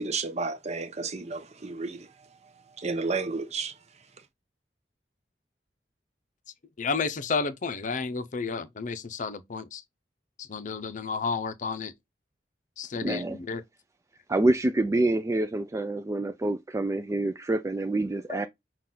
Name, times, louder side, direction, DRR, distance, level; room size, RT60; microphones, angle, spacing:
voice 1, 0.0-2.1 2.8-3.7, right 4 dB, 40° right, 0.8 m, -31 dB
voice 2, 6.8-9.8 10.4-11.9 12.8-13.6 18.3-18.4, left 4 dB, 45° left, 0.6 m, -31 dB
voice 3, 13.0-13.4 14.3-18.5, right 2 dB, 15° right, 0.3 m, -26 dB
5.8 x 2.4 x 3.8 m
head